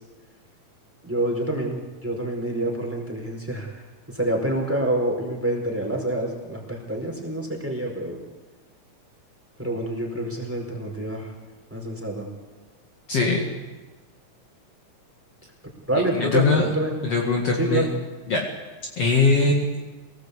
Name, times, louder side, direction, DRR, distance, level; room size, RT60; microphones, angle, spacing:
voice 1, 1.0-3.8 4.1-8.2 9.6-11.3 11.7-12.3 15.9-16.9 17.5-17.9, right 1 dB, 5° right, 1 dB, 4.6 m, -27 dB
voice 2, 13.1-13.5 16.1-16.7 17.0-17.9 18.3-18.5 19.0-19.7, left 3 dB, 50° left, 0 dB, 3.0 m, -21 dB
24.5 x 18.5 x 8.4 m, 1.2 s
omnidirectional pair, 3.7 m